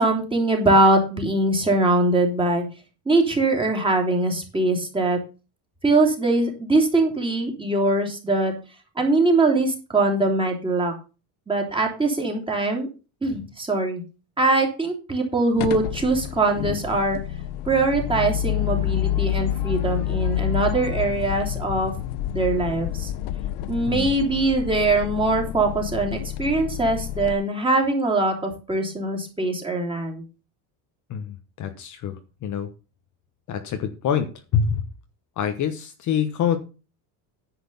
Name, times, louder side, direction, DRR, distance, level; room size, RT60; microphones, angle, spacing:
voice 1, 0.0-2.6 3.1-5.2 5.8-8.5 9.0-10.9 11.5-12.9 13.2-14.0 14.4-17.2 17.7-22.0 22.3-23.1 23.7-30.2, right 2 dB, 10° right, 2 dB, 3.1 m, -22 dB
sound 1, 15.6-27.3, left 12 dB, 90° left, 1.2 m, -28 dB
voice 2, 31.1-32.2 32.4-32.7 33.5-34.3 34.5-34.8 35.4-36.6, left 8 dB, 40° left, 7 dB, 1.2 m, -25 dB
10.5 x 7.8 x 5.4 m, 0.32 s
cardioid pair, 165°, 47 cm